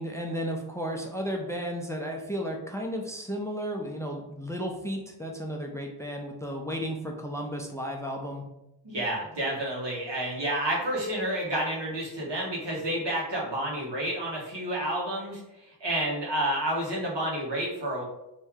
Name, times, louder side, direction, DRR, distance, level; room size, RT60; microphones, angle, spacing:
voice 1, 0.0-8.4, equal, 5° left, 1 dB, 0.6 m, -33 dB
voice 2, 8.8-18.0, right 1 dB, 75° right, -4 dB, 1.4 m, -30 dB
3.1 x 2.7 x 3.6 m, 0.89 s
cardioid pair, 50°, 42 cm